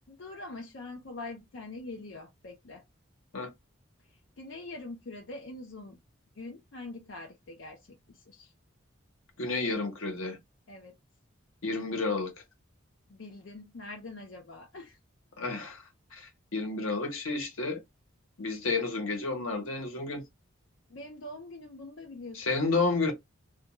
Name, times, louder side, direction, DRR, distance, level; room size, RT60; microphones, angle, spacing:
voice 1, 0.1-2.8 4.1-6.0 6.3-8.5 10.7-11.0 13.1-15.0 20.9-22.5, left 2 dB, 65° left, 0.5 m, -44 dB
voice 2, 9.4-10.4 11.6-12.3 15.4-15.8 16.1-17.8 18.4-20.2 22.3-23.1, left 3 dB, 85° left, 0.9 m, -31 dB
2.3 x 2.2 x 2.9 m
head